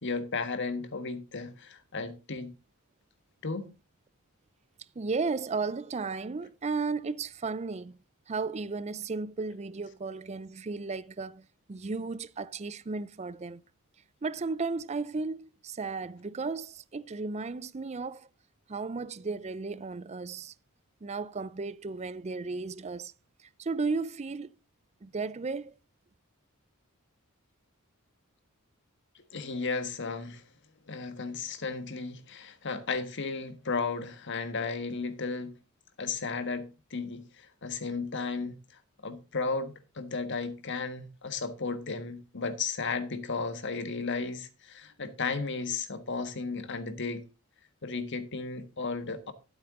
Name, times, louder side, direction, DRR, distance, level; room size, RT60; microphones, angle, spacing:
voice 1, 0.0-2.5 3.4-3.7 29.3-30.4 30.9-35.5 36.0-47.2 47.8-49.3, left 4 dB, 55° left, 1.5 m, -34 dB
voice 2, 5.0-8.0 8.3-13.6 14.2-18.3 18.7-20.5 21.0-23.1 23.4-24.5 25.0-25.7, right 4 dB, 30° right, 0.5 m, -34 dB
12.5 x 8.1 x 3.7 m
head